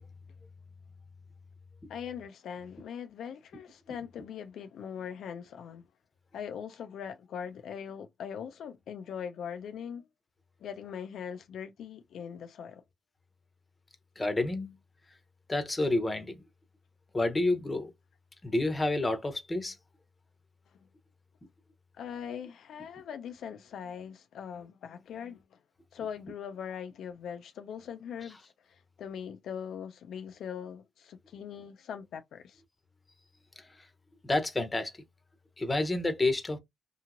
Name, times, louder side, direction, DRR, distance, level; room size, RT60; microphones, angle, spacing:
voice 1, 1.9-5.9 6.3-10.1 10.6-12.8 22.0-25.6 25.9-32.6, left 8 dB, 70° left, 0.3 m, -41 dB
voice 2, 14.2-14.7 15.5-16.4 17.1-17.9 18.4-19.8 33.6-33.9 34.2-34.9 35.6-36.6, left 2 dB, 20° left, 0.7 m, -29 dB
2.9 x 2.7 x 2.5 m
cardioid pair, 90°, 0 cm